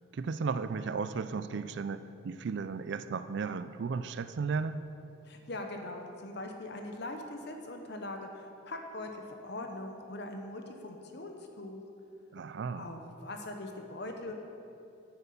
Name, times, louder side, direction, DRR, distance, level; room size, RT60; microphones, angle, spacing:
voice 1, 0.1-4.8 12.3-12.9, right 5 dB, 55° right, 12 dB, 0.3 m, -35 dB
voice 2, 5.2-11.8 12.8-14.3, left 2 dB, 55° left, 4 dB, 1.0 m, -41 dB
8.9 x 7.6 x 6.0 m, 2.7 s
head